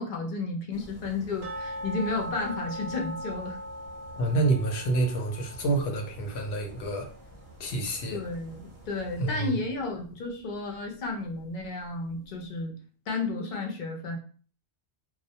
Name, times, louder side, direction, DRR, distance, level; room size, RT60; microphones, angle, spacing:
voice 1, 0.0-3.6 8.1-12.7 13.1-14.2, left 3 dB, 55° left, 1 dB, 0.6 m, -32 dB
sound 1, 0.7-9.4, right 1 dB, 45° right, 0.6 m, -50 dB
sound 2, 1.4-8.3 8.6-8.7 9.2-9.3 9.8-9.9, equal, 75° right, 0.8 m, -40 dB
voice 2, 4.2-7.1 7.6-8.2 9.2-9.6, right 2 dB, 90° left, 3 dB, 0.9 m, -28 dB
2.2 x 2.1 x 2.7 m, 0.42 s
omnidirectional pair, 1.1 m